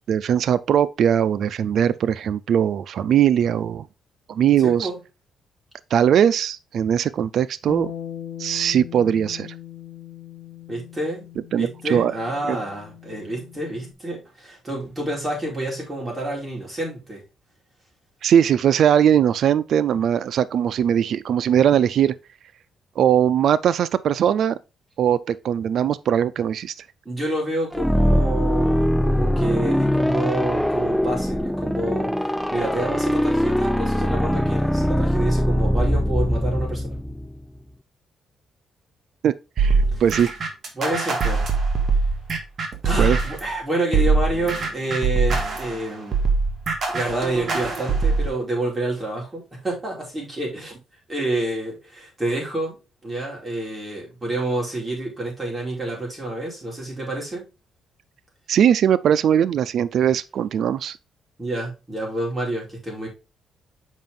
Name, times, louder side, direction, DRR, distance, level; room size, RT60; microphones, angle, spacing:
voice 1, 0.1-3.9 4.3-4.9 5.9-7.9 8.4-9.5 11.5-12.2 12.5-12.6 18.2-22.1 23.0-24.6 25.0-26.7 39.2-40.3 43.0-43.2 58.5-61.0, right 9 dB, 65° right, 0.4 m, -20 dB
voice 2, 4.6-5.0 10.7-11.3 11.6-17.2 27.0-37.0 39.9-40.0 40.7-41.5 42.8-46.2 46.9-50.8 51.1-52.8 53.0-57.5 61.4-63.1, right 1 dB, 20° right, 4.6 m, -28 dB
Bass guitar, 7.7-13.9, left 11 dB, 90° left, 1.1 m, -39 dB
sound 1, 27.7-37.4, equal, ahead, 0.4 m, -22 dB
sound 2, 39.6-43.5 43.9-48.3, right 4 dB, 50° right, 2.0 m, -22 dB
7.3 x 5.2 x 3.7 m
cardioid pair, 90°, 0 cm